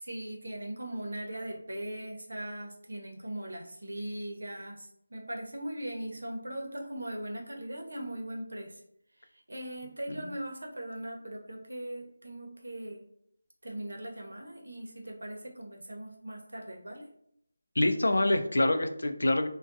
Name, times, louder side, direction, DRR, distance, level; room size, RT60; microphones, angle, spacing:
voice 1, 0.0-8.8 9.2-13.0 13.6-17.1, right 1 dB, 90° right, 1 dB, 0.8 m, -39 dB
voice 2, 17.8-19.5, left 1 dB, 75° left, 7 dB, 0.4 m, -26 dB
2.4 x 2.2 x 2.6 m, 0.70 s
figure-of-eight pair, 180°, 0 cm